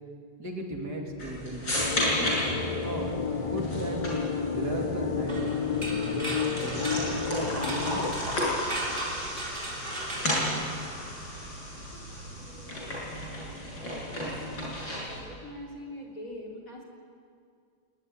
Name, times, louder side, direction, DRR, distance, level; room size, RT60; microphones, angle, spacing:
voice 1, 0.4-2.3 2.8-3.2 3.5-4.0 4.5-8.1, right 1 dB, 55° right, 1 dB, 3.7 m, -36 dB
sound 1, 1.2-15.2, left 1 dB, 70° left, 7.2 m, -33 dB
sound 2, 1.8-8.1, left 5 dB, 30° left, 0.7 m, -31 dB
sound 3, 5.3-11.3, right 1 dB, 25° right, 4.0 m, -37 dB
voice 2, 12.1-13.1 13.9-14.7 15.1-16.8, left 1 dB, 45° left, -1 dB, 4.0 m, -45 dB
22.5 x 20.0 x 9.9 m, 2.3 s
omnidirectional pair, 2.1 m